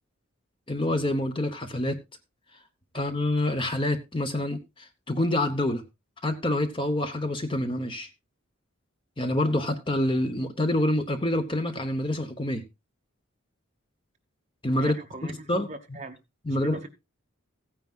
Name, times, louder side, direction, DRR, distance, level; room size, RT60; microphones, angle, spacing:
voice 1, 0.7-2.0 2.9-5.8 6.2-8.1 9.2-12.6 14.6-14.9 15.5-15.7 16.4-16.8, left 1 dB, 25° left, 0.9 m, -27 dB
voice 2, 14.8-16.2 16.5-16.9, right 2 dB, 35° right, 1.1 m, -40 dB
15.5 x 9.4 x 2.4 m
head